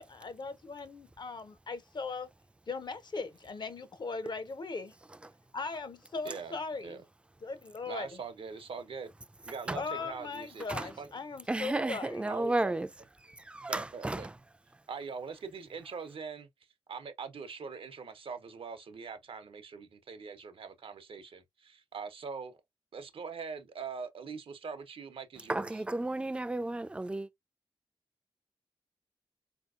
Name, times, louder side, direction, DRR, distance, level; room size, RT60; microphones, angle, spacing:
voice 1, 0.0-2.3 2.7-4.9 5.5-7.0 7.4-8.2 9.8-12.3, left 4 dB, 55° left, 0.6 m, -39 dB
voice 2, 6.2-6.6 6.8-7.0 7.9-9.1 9.5-11.1 11.7-11.9 12.3-12.7 13.7-14.3 14.9-16.5 16.9-22.6 22.9-25.7, right 5 dB, 80° right, 0.7 m, -42 dB
voice 3, 11.5-12.9 13.2-14.4 25.5-27.3, right 2 dB, 10° right, 0.3 m, -33 dB
4.1 x 2.8 x 2.4 m
wide cardioid pair, 115°, 9 cm